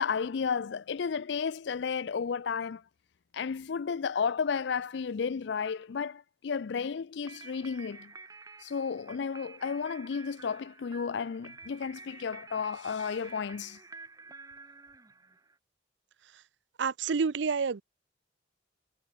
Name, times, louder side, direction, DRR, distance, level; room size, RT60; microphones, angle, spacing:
voice 1, 0.0-2.8 3.3-8.1 8.6-13.8, left 6 dB, 65° left, 0.4 m, -33 dB
sound 1, 7.2-15.6, right 4 dB, 20° right, 1.0 m, -50 dB
voice 2, 16.8-17.8, right 5 dB, 70° right, 0.5 m, -28 dB
head